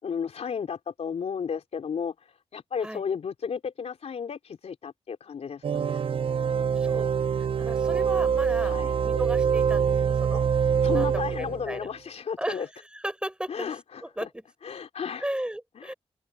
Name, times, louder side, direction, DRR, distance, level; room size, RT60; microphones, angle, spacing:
voice 1, 0.0-2.1 2.5-6.1 8.6-9.0 10.8-12.7 13.5-14.3 14.6-15.2 15.8-15.9, left 6 dB, 80° left, 3.7 m, -33 dB
sound 1, 5.6-11.8, right 7 dB, 55° right, 0.4 m, -25 dB
voice 2, 6.8-7.1 7.4-10.4 10.8-11.9 12.4-13.7 14.0-14.4 15.2-15.9, right 1 dB, 10° right, 3.9 m, -35 dB
open air
cardioid pair, 80°, 11 cm